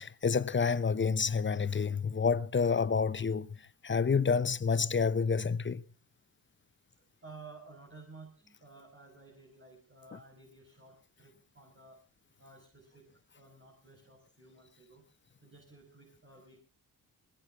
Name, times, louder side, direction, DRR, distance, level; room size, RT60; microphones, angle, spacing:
voice 1, 0.0-3.5 3.8-5.8, left 5 dB, 25° left, 0.9 m, -28 dB
voice 2, 7.0-12.0 12.4-15.1 15.4-16.6, right 3 dB, 25° right, 6.1 m, -54 dB
21.5 x 19.5 x 2.7 m
hypercardioid pair, 40°, 48 cm